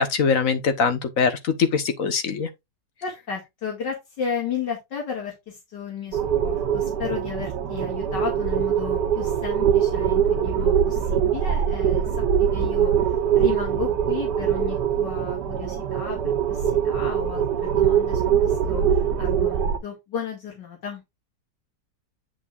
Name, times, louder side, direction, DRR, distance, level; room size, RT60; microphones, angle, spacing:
voice 1, 0.0-2.5, left 5 dB, 50° left, 1.5 m, -22 dB
voice 2, 3.0-21.0, left 7 dB, 80° left, 2.9 m, -34 dB
sound 1, 6.1-19.8, right 8 dB, 75° right, 1.6 m, -23 dB
8.5 x 7.1 x 2.5 m
omnidirectional pair, 1.9 m